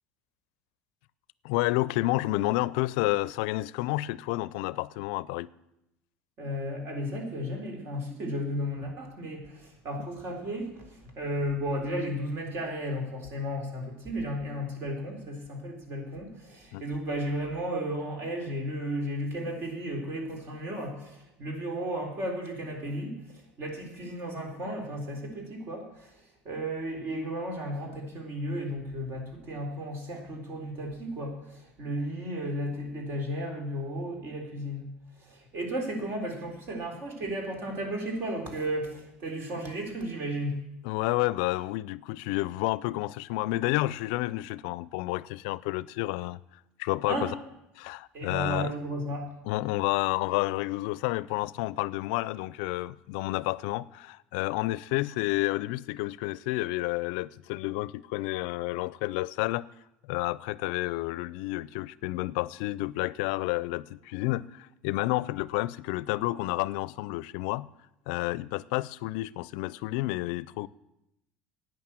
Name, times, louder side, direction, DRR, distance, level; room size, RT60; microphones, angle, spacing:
voice 1, 1.4-5.5 16.7-16.8 40.8-46.4 46.8-47.3 47.8-48.7 49.4-59.6 60.1-67.7 68.1-70.7, left 19 dB, 75° left, 0.4 m, -30 dB
voice 2, 6.4-26.1 26.4-34.8 35.2-40.6 47.1-47.3 48.1-49.3, equal, 50° right, 3.9 m, -34 dB
11.0 x 9.1 x 7.6 m
supercardioid pair, 90°, 5 cm